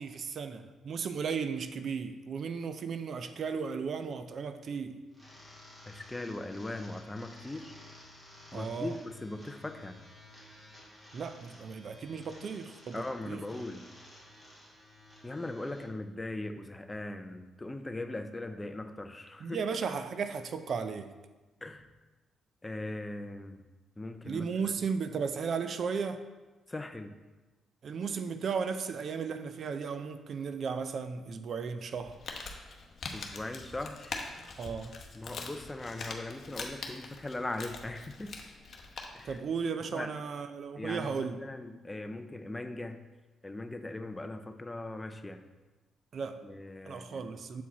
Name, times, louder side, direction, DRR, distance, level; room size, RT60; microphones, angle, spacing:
voice 1, 0.0-5.0 8.5-9.0 11.1-13.4 19.4-21.1 24.2-26.2 27.8-32.2 34.6-34.9 39.2-41.4 46.1-46.4 46.9-47.6, right 5 dB, 55° right, 10 dB, 0.4 m, -35 dB
sound 1, 5.1-15.8, left 1 dB, 20° right, 2.0 m, -53 dB
voice 2, 5.9-7.7 8.5-10.0 12.9-13.8 15.2-19.6 21.6-21.9 22.6-23.6 24.0-24.4 26.7-27.1 33.1-34.2 35.1-38.3 39.1-39.4 39.9-40.1 40.8-43.0 43.4-45.4 46.4-47.3, left 2 dB, 15° left, 8 dB, 0.5 m, -39 dB
Crumpling crinkling, 32.0-39.4, left 4 dB, 50° left, 0.9 m, -43 dB
7.4 x 4.5 x 4.1 m, 1.2 s
cardioid pair, 100°, 0 cm